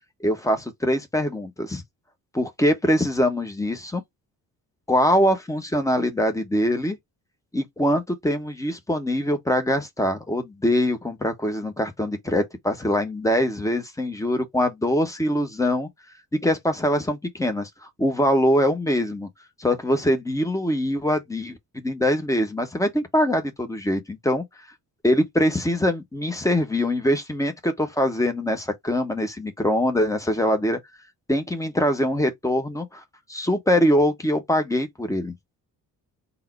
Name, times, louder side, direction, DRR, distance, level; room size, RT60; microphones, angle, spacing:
voice 1, 0.2-1.8 2.3-4.0 4.9-7.0 7.5-15.9 16.4-17.7 18.0-19.3 19.6-21.6 21.8-24.4 25.0-30.8 31.3-33.0 33.3-35.3, equal, 5° left, 1.1 m, -23 dB
3.9 x 2.1 x 4.1 m
figure-of-eight pair, 40°, 49 cm